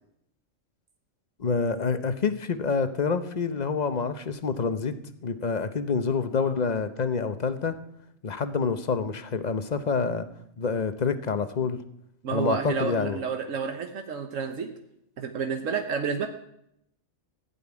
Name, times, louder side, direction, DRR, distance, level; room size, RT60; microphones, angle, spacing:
voice 1, 1.4-5.0 5.2-7.8 8.2-10.3 10.6-11.8 12.3-13.2, left 5 dB, 40° left, 11 dB, 0.8 m, -27 dB
voice 2, 12.2-14.7 15.2-16.3, right 6 dB, 80° right, 6 dB, 1.4 m, -30 dB
15.5 x 5.5 x 9.7 m, 0.77 s
omnidirectional pair, 1.3 m